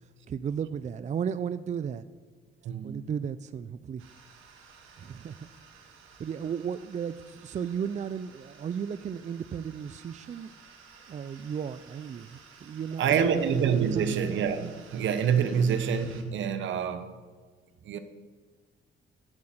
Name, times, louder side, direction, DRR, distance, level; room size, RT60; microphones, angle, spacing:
voice 1, 0.0-2.0 2.8-4.0 5.0-5.5 6.2-10.5 11.1-13.4 13.9-14.2, right 7 dB, 35° right, 0.4 m, -35 dB
voice 2, 2.6-3.1 13.0-17.2 17.8-18.0, right 7 dB, 70° right, 1.0 m, -26 dB
sound 1, 4.0-16.2, right 5 dB, 90° right, 1.8 m, -54 dB
9.8 x 7.6 x 7.8 m
cardioid pair, 90°, 20 cm